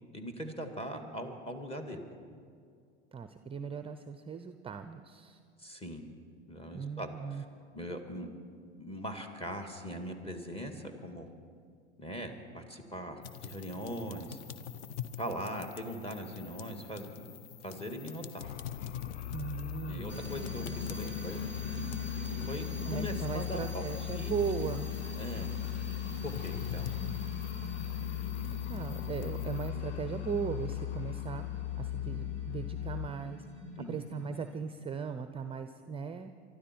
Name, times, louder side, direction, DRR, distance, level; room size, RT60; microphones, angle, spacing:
voice 1, 0.1-2.0 5.6-6.1 6.5-7.4 7.7-8.3 8.8-11.3 12.0-14.4 15.2-17.3 17.6-18.5 19.9-21.4 22.5-22.6 22.9-23.8 24.1-24.7 25.2-25.5 26.2-26.9 33.8-34.0, equal, 15° left, 4 dB, 2.0 m, -40 dB
voice 2, 3.1-5.4 6.7-7.4 19.3-20.2 22.9-24.9 28.7-33.5 33.9-36.3, right 6 dB, 15° right, 9 dB, 0.5 m, -38 dB
sound 1, 13.2-29.7, left 9 dB, 50° left, 1.0 m, -46 dB
sound 2, 18.4-33.1, left 13 dB, 80° left, 0.5 m, -38 dB
sound 3, 20.1-34.6, left 2 dB, 35° left, 2.9 m, -43 dB
23.5 x 12.5 x 4.5 m, 2.2 s
hypercardioid pair, 85°, 33 cm